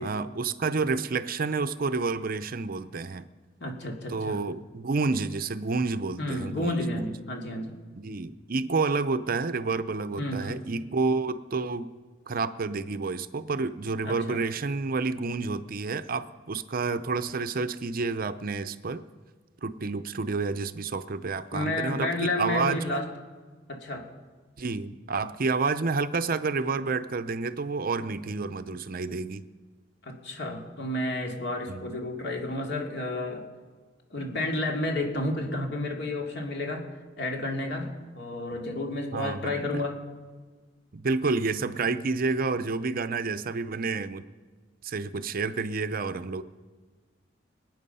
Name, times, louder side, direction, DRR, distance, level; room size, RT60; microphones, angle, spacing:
voice 1, 0.0-3.2 4.1-7.2 8.0-11.9 12.3-19.0 19.6-23.1 24.6-29.4 31.7-31.9 39.1-39.8 40.9-44.2 44.8-46.4, right 4 dB, 50° right, 12 dB, 0.6 m, -29 dB
voice 2, 3.6-4.4 6.2-7.8 10.2-10.6 14.0-14.4 21.5-23.0 23.7-24.1 30.0-33.4 34.1-36.9 37.2-40.0, left 1 dB, 60° left, 1 dB, 2.5 m, -31 dB
26.0 x 9.2 x 5.5 m, 1.4 s
head